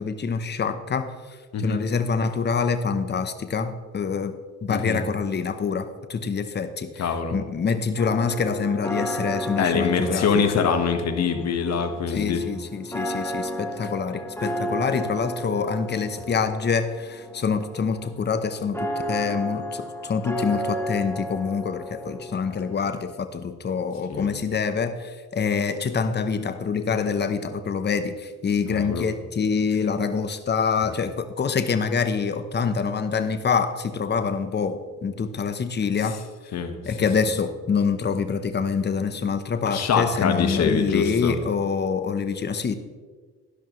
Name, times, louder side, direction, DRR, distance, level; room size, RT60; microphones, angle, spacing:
voice 1, 0.0-10.6 12.1-36.2 36.9-42.7, left 5 dB, 35° left, 10 dB, 0.9 m, -26 dB
voice 2, 4.7-5.0 7.0-7.4 9.6-12.4 24.1-24.3 28.7-29.1 36.5-36.8 39.7-41.3, left 6 dB, 60° left, 6 dB, 1.4 m, -24 dB
sound 1, 8.0-22.9, equal, 10° left, 1.6 m, -33 dB
11.5 x 11.5 x 3.2 m, 1.4 s
cardioid pair, 90°, 30 cm